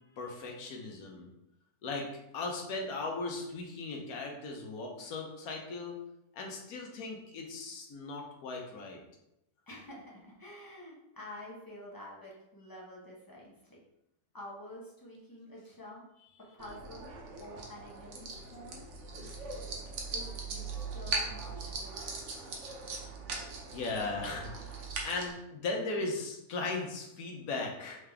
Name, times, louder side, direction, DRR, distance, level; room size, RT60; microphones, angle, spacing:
voice 1, 0.2-1.3 1.8-2.1 2.3-6.0 6.3-9.0 23.7-24.8 25.0-28.0, left 3 dB, 65° left, 0 dB, 1.2 m, -37 dB
voice 2, 9.7-13.8 14.3-16.0 16.5-17.1 17.4-18.9 20.1-22.6, left 1 dB, 25° left, -4 dB, 0.5 m, -49 dB
sound 1, 16.6-25.3, right 3 dB, 55° right, 0.9 m, -40 dB
3.8 x 3.5 x 3.4 m, 0.86 s
omnidirectional pair, 1.8 m